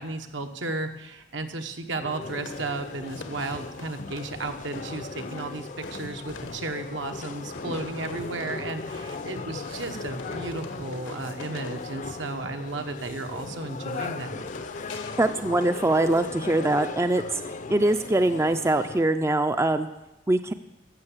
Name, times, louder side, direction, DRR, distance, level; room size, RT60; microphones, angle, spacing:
voice 1, 0.0-14.5, right 2 dB, 75° right, 6 dB, 1.1 m, -34 dB
sound 1, 2.0-19.0, left 3 dB, 40° left, 0.5 m, -38 dB
sound 2, 2.2-16.9, left 3 dB, 85° left, 1.2 m, -44 dB
voice 2, 15.2-17.4 17.7-19.9 20.3-20.5, right 2 dB, 15° right, 9 dB, 0.4 m, -23 dB
14.5 x 6.8 x 7.3 m, 0.95 s
head